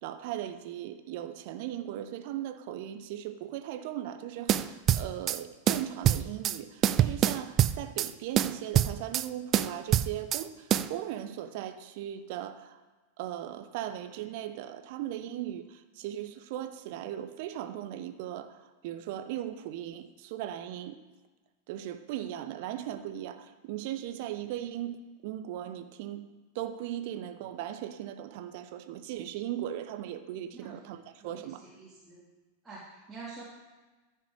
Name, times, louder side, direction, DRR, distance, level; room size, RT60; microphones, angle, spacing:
voice 1, 0.0-12.8 13.2-18.6 18.8-21.0 21.7-31.6, right 12 dB, 50° right, 10 dB, 0.8 m, -38 dB
sound 1, 4.5-5.4 5.7-6.6 6.8-8.1 8.4-9.3 9.5-10.4 10.7-10.9, right 11 dB, 30° right, 0.4 m, -25 dB
voice 2, 30.5-30.9 31.2-32.3 32.6-33.4, right 4 dB, 10° right, -8 dB, 2.6 m, -47 dB
14.5 x 5.6 x 4.9 m, 1.3 s
figure-of-eight pair, 90°, 0 cm